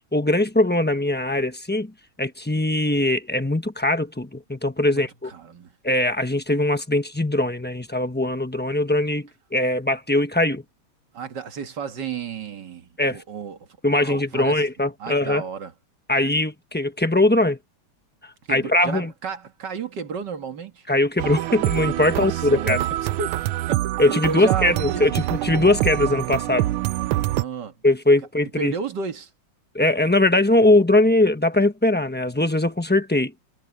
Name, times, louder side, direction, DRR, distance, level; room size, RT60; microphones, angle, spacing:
voice 1, 0.1-1.9 2.2-5.3 5.8-10.6 13.0-13.2 13.8-15.4 16.1-17.6 18.5-19.1 20.9-22.8 24.0-26.7 27.8-28.7 29.7-33.3, left 2 dB, 10° left, 0.6 m, -21 dB
voice 2, 4.9-5.7 11.1-13.7 14.0-14.7 15.0-15.7 18.5-20.9 22.0-23.3 23.7-25.0 27.4-27.7 28.6-29.3, right 6 dB, 55° right, 2.2 m, -32 dB
sound 1, 21.2-27.4, right 16 dB, 85° right, 1.4 m, -25 dB
omnidirectional pair, 2.3 m